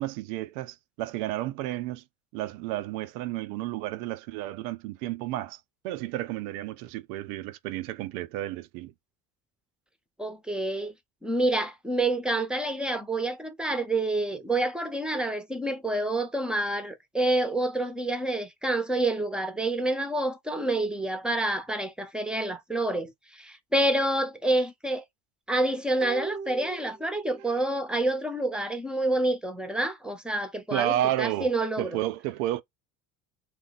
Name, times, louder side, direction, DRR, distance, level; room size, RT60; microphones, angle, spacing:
voice 1, 0.0-2.0 2.3-8.9 30.7-31.5 31.8-32.6, right 14 dB, 75° right, 0.7 m, -31 dB
voice 2, 10.2-10.9 11.2-25.0 25.5-31.9, right 2 dB, ahead, 0.8 m, -28 dB
sound 1, 26.0-27.6 27.9-28.0, right 5 dB, 25° right, 0.5 m, -40 dB
2.9 x 2.3 x 4.0 m
supercardioid pair, 85°, 46 cm